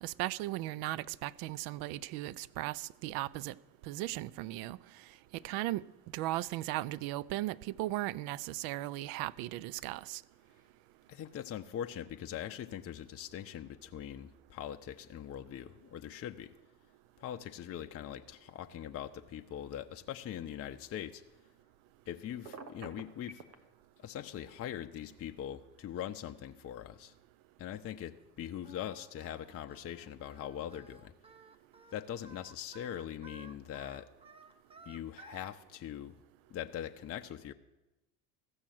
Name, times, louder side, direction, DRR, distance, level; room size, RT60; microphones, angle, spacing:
voice 1, 0.0-3.6 3.9-4.8 5.3-5.8 6.1-10.2, right 16 dB, 50° right, 0.5 m, -37 dB
voice 2, 11.1-16.5 17.2-21.2 22.1-23.4 24.0-27.1 27.6-31.1 31.9-34.1 34.9-36.2 36.5-37.5, left 10 dB, 30° left, 0.6 m, -42 dB
Telephone, 22.4-23.6, right 4 dB, 90° right, 1.2 m, -46 dB
Singing, 28.6-35.5, right 2 dB, 10° right, 0.7 m, -56 dB
14.5 x 6.3 x 7.7 m
hypercardioid pair, 75°, 49 cm